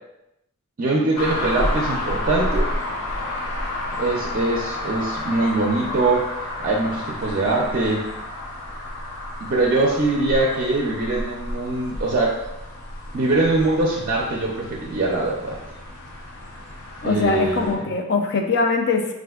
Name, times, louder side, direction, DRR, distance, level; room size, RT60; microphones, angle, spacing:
voice 1, 0.8-2.7 4.0-6.3 6.6-8.1 9.4-12.4 13.1-15.6 17.0-17.8, right 2 dB, 45° right, -2 dB, 0.5 m, -22 dB
sound 1, 1.2-17.7, left 1 dB, 90° left, 0.8 m, -31 dB
voice 2, 17.0-19.1, left 4 dB, 55° left, 4 dB, 0.4 m, -22 dB
4.2 x 2.5 x 2.3 m, 0.90 s
head